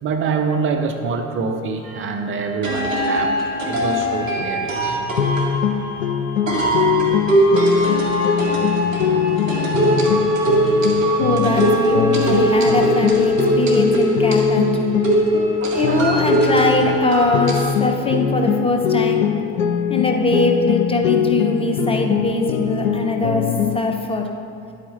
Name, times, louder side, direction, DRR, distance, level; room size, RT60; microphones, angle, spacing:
voice 1, 0.0-5.0 15.6-16.1, right 4 dB, 30° right, 4 dB, 0.8 m, -25 dB
sound 1, 1.9-2.0 2.6-17.7, right 1 dB, 75° right, 1.6 m, -20 dB
sound 2, 5.2-17.0 17.3-23.8, left 8 dB, 80° left, 0.5 m, -22 dB
voice 2, 11.2-15.0 15.7-19.3 19.9-23.4 23.7-24.3, left 2 dB, 15° left, 2 dB, 0.9 m, -21 dB
11.5 x 8.4 x 4.1 m, 2.8 s
figure-of-eight pair, 65°, 39 cm